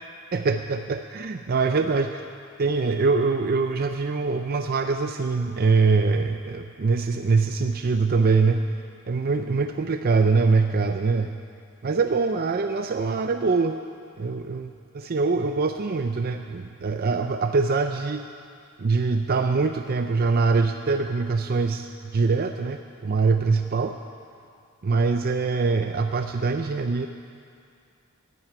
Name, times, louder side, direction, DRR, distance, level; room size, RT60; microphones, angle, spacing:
voice 1, 0.3-2.2 2.6-8.7 9.1-11.3 11.8-13.8 14.2-18.2 18.8-21.9 22.1-24.0 24.8-27.1, right 4 dB, 45° right, 6 dB, 0.5 m, -23 dB
14.0 x 9.0 x 9.4 m, 2.4 s
head